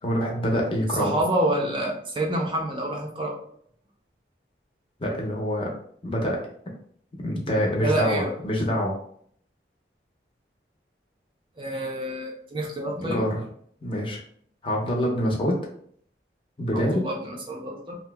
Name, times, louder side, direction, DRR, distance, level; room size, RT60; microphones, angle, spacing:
voice 1, 0.0-1.1 5.0-5.7 6.0-6.4 7.2-8.9 13.0-13.4 13.8-14.2 14.6-15.6 16.6-17.0, equal, 30° left, -1 dB, 0.6 m, -25 dB
voice 2, 1.0-3.4 7.8-8.3 11.6-13.2 16.7-18.0, right 1 dB, 30° right, 0 dB, 0.4 m, -28 dB
2.7 x 2.0 x 3.3 m, 0.62 s
head